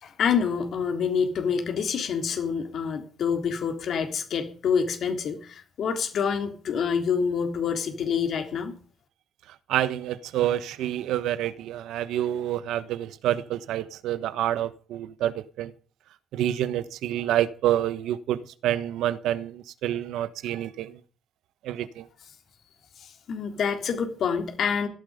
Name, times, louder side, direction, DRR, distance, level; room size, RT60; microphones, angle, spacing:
voice 1, 0.0-8.7 23.3-24.9, left 6 dB, 50° left, 3.6 m, -27 dB
voice 2, 9.7-15.7 16.3-20.9 21.6-22.0, right 12 dB, 85° right, 1.2 m, -28 dB
17.0 x 13.5 x 5.1 m
cardioid pair, 165°, 0 cm